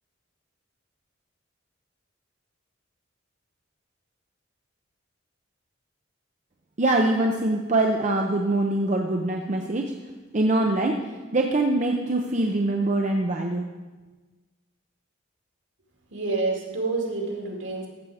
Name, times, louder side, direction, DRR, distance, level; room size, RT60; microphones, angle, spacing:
voice 1, 6.8-9.9 10.3-11.0 11.3-13.6, right 2 dB, 40° right, 2 dB, 0.7 m, -23 dB
voice 2, 16.1-17.9, right 3 dB, 70° right, 0 dB, 2.4 m, -28 dB
14.5 x 7.3 x 4.9 m, 1.3 s
head